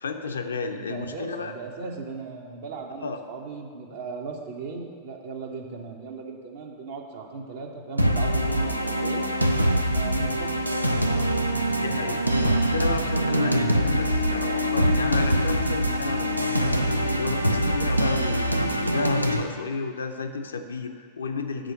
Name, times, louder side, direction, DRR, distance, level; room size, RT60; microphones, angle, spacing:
voice 1, 0.0-1.5 3.0-3.2 11.8-16.8 17.2-21.7, left 4 dB, 70° left, 7 dB, 0.5 m, -32 dB
voice 2, 0.7-9.3 9.9-10.7, right 4 dB, 55° right, 2 dB, 1.0 m, -37 dB
sound 1, 8.0-19.4, equal, 85° right, 0.4 m, -24 dB
6.4 x 5.0 x 6.3 m, 2.1 s
figure-of-eight pair, 90°, 0 cm